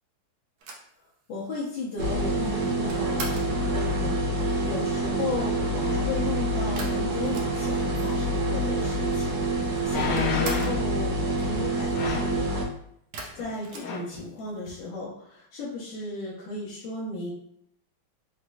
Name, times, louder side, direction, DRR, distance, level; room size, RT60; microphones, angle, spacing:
sound 1, 0.6-3.6 6.7-7.9 8.2-8.3 8.5-9.3 9.5-10.9 13.1-14.6, right 3 dB, 65° right, 1.1 m, -41 dB
voice 1, 1.3-12.6 13.3-17.3, left 3 dB, 70° left, -8 dB, 1.5 m, -35 dB
sound 2, 2.0-12.6, right 1 dB, 85° right, 1.6 m, -27 dB
sound 3, 8.8-8.9 9.9-10.9 11.9-12.4 13.4-13.5 13.8-14.2 14.7-14.8, left 5 dB, 85° left, 1.4 m, -30 dB
4.1 x 2.9 x 2.2 m, 0.73 s
omnidirectional pair, 2.2 m